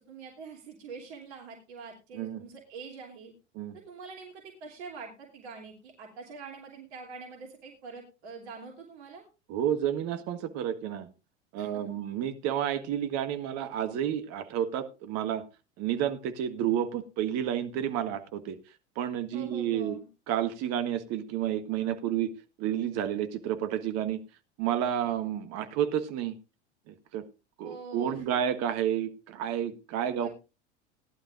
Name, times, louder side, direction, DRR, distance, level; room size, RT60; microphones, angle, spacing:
voice 1, 0.0-3.3 3.9-9.2 11.6-11.8 19.3-20.1 27.6-28.4 30.0-30.3, right 5 dB, 65° right, 0 dB, 3.1 m, -45 dB
voice 2, 9.5-11.1 11.5-15.4 15.8-18.6 18.9-20.0 20.3-22.3 22.6-24.2 24.6-26.4 26.9-27.2 27.6-30.3, right 10 dB, 45° right, 9 dB, 1.5 m, -30 dB
18.5 x 11.5 x 2.5 m, 0.30 s
figure-of-eight pair, 85°, 36 cm